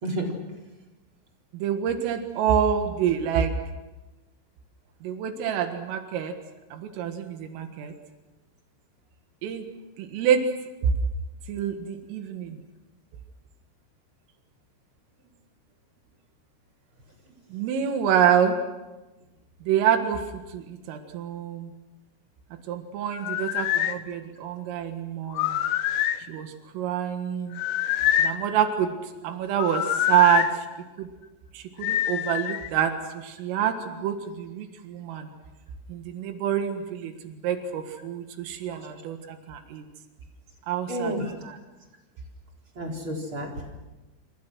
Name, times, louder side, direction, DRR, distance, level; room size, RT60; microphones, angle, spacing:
voice 1, 1.5-3.6 5.0-6.4 6.7-7.9 9.4-9.7 10.0-10.4 10.8-10.9 11.5-12.6 17.5-18.6 19.6-21.7 22.7-25.6 26.2-27.6 28.2-30.7 31.0-31.1 31.5-35.3 35.9-39.8 40.7-41.6 42.8-43.0, right 9 dB, 90° right, 6 dB, 4.3 m, -27 dB
sound 1, 23.1-24.0 25.3-26.2 27.5-28.4 29.6-30.5 31.8-32.7, left 11 dB, 75° left, 3.3 m, -25 dB
voice 2, 40.9-41.3 42.8-43.5, right 1 dB, 25° right, 0 dB, 4.3 m, -30 dB
27.0 x 26.5 x 6.3 m, 1.1 s
omnidirectional pair, 5.7 m